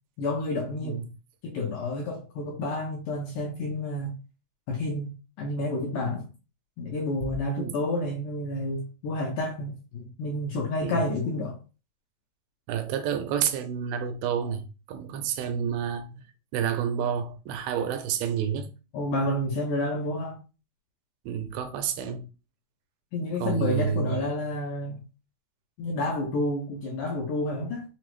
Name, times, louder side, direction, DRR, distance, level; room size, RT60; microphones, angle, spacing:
voice 1, 0.2-1.0 1.4-4.1 4.7-6.3 6.8-11.6 18.9-20.4 23.1-25.0 25.8-27.8, left 2 dB, 75° left, 2.0 m, -30 dB
voice 2, 12.7-16.2 16.5-18.7 21.3-22.3 23.4-24.2, right 8 dB, 85° right, 2.4 m, -29 dB
6.0 x 2.0 x 3.0 m
omnidirectional pair, 4.4 m